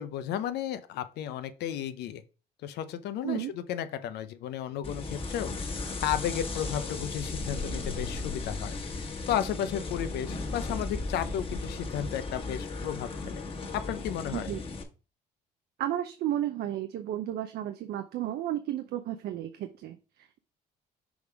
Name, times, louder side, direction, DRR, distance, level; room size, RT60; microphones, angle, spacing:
voice 1, 0.0-2.2 2.6-5.5 6.0-8.8 9.3-13.4 13.7-14.5, left 10 dB, 75° left, 10 dB, 0.7 m, -33 dB
sound 1, 4.8-14.8, left 3 dB, 35° left, 1.7 m, -36 dB
voice 2, 15.8-20.4, right 12 dB, 70° right, 8 dB, 0.7 m, -33 dB
6.3 x 3.5 x 4.7 m, 0.33 s
cardioid pair, 110°, 17 cm